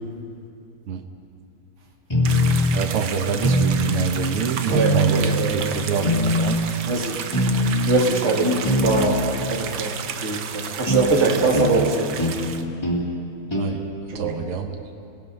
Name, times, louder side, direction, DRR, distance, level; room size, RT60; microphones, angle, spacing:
sound 1, 2.1-2.8 3.4-4.1 4.7-5.4 6.0-6.7 7.3-8.0 8.6-9.3 10.9-11.1 11.5-11.7 12.2-12.4 12.8-13.0 13.5-13.7, equal, 10° left, 2.8 m, -21 dB
sound 2, 2.2-12.6, right 7 dB, 65° right, 1.7 m, -32 dB
voice 1, 2.7-6.6 13.5-13.8 14.2-14.7, right 5 dB, 85° right, 4 dB, 2.1 m, -27 dB
voice 2, 4.7-5.8 6.8-7.2 7.9-12.1 14.1-14.4, right 3 dB, 35° right, -1 dB, 2.5 m, -23 dB
29.5 x 17.5 x 5.4 m, 2.5 s
omnidirectional pair, 2.4 m